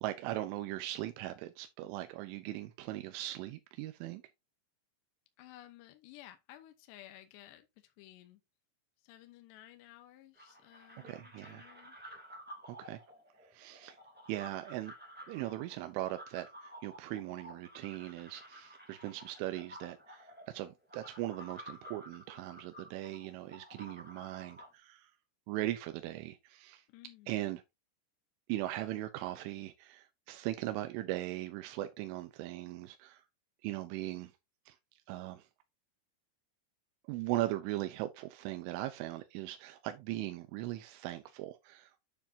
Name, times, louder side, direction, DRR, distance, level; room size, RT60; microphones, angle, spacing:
voice 1, 0.0-4.2 11.0-11.6 12.7-13.0 13.5-14.0 14.3-14.9 15.3-25.1 25.5-26.8 27.3-27.6 28.5-33.2 33.6-34.3 34.7-34.8 35.1-35.5 37.1-42.0, right 15 dB, 90° right, 3.3 m, -39 dB
voice 2, 5.4-8.4 9.0-12.0 26.9-27.4, left 14 dB, 75° left, 2.9 m, -55 dB
sound 1, 10.3-24.7, equal, 5° right, 1.5 m, -53 dB
9.3 x 7.0 x 2.7 m
omnidirectional pair, 5.4 m